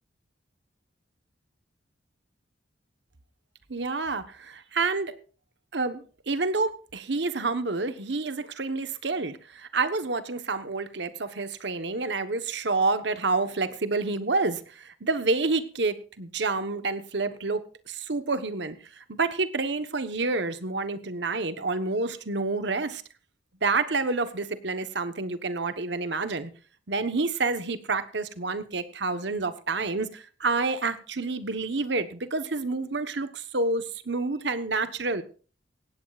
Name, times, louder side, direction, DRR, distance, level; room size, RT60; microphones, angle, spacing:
voice 1, 3.7-5.1 5.7-23.0 23.6-26.5 26.9-35.2, right 3 dB, 65° right, 11 dB, 1.1 m, -28 dB
17.5 x 16.5 x 2.5 m, 0.38 s
head